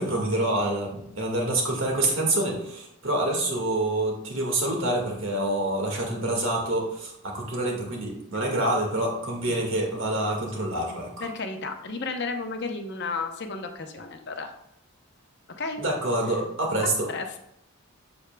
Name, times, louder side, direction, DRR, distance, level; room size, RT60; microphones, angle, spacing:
voice 1, 0.0-11.3 15.8-17.1, right 1 dB, 60° right, 0 dB, 1.9 m, -27 dB
voice 2, 11.2-14.5 15.6-15.8 17.1-17.4, left 4 dB, 50° left, 5 dB, 0.8 m, -32 dB
8.2 x 7.1 x 2.3 m, 0.79 s
head